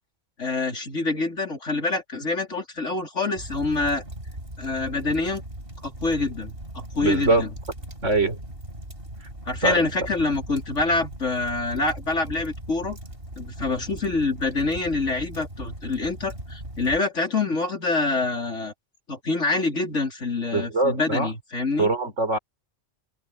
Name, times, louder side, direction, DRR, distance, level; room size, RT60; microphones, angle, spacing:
voice 1, 0.4-4.0 4.6-5.4 5.8-7.5 9.5-13.0 13.4-18.7 19.1-21.9, left 3 dB, 75° left, 4.5 m, -26 dB
sound 1, 3.4-17.0, right 1 dB, 50° right, 8.2 m, -39 dB
voice 2, 7.0-7.5 8.0-8.4 9.6-10.1 20.5-21.3 21.8-22.4, right 2 dB, 75° right, 4.5 m, -23 dB
omnidirectional pair, 1.3 m